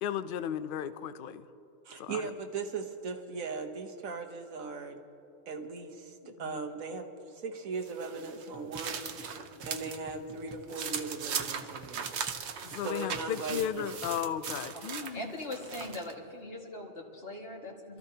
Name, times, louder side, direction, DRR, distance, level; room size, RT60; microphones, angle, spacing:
voice 1, 0.0-1.4 2.0-2.3 6.2-6.6 12.6-15.3, left 9 dB, 60° left, 12 dB, 0.5 m, -35 dB
voice 2, 1.8-5.0 5.5-9.1 9.6-12.2 12.8-13.9, right 4 dB, 80° right, 4 dB, 1.5 m, -38 dB
sound 1, 7.8-10.0 10.4-16.1, right 7 dB, 60° right, 1.0 m, -39 dB
sound 2, 8.5-14.6, right 1 dB, 10° right, 0.8 m, -53 dB
voice 3, 15.1-18.0, left 1 dB, 45° left, -1 dB, 2.1 m, -41 dB
27.0 x 14.0 x 2.8 m, 2.9 s
omnidirectional pair, 1.4 m